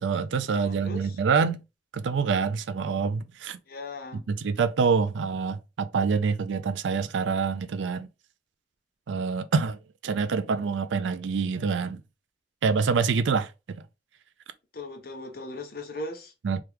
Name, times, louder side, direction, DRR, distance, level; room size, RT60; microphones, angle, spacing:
voice 1, 0.0-1.6 1.9-3.6 4.1-8.1 9.1-12.0 12.6-13.9 16.4-16.6, right 5 dB, 85° right, 0.4 m, -26 dB
voice 2, 0.6-1.2 3.7-4.3 14.7-16.3, left 2 dB, 55° left, 0.7 m, -38 dB
2.9 x 2.3 x 3.4 m
head